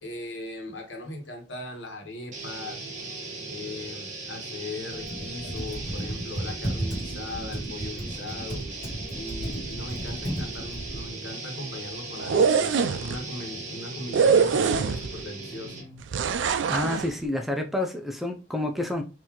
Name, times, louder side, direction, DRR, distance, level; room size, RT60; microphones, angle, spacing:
voice 1, 0.0-2.9 3.5-8.7 9.1-15.8, left 2 dB, 85° left, 1.2 m, -39 dB
sound 1, 2.3-16.0, right 3 dB, 45° right, 1.1 m, -38 dB
Computer keyboard, 4.9-11.1, right 1 dB, 35° left, 1.7 m, -34 dB
sound 2, 12.2-13.1 14.1-15.2 16.1-17.1, right 6 dB, 85° right, 0.4 m, -23 dB
voice 2, 16.7-19.0, left 1 dB, ahead, 0.5 m, -29 dB
3.9 x 2.7 x 2.9 m
head